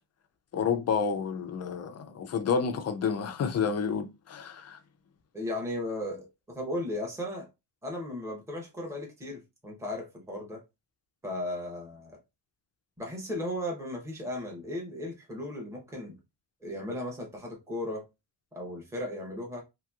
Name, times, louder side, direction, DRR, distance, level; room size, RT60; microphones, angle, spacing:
voice 1, 0.5-4.8, left 6 dB, 35° left, 0.4 m, -30 dB
voice 2, 5.3-7.5 7.8-10.6 11.2-12.2 13.0-16.2 16.6-18.0 18.5-19.6, left 1 dB, 5° right, 0.8 m, -36 dB
2.9 x 2.9 x 2.3 m
cardioid pair, 140°, 47 cm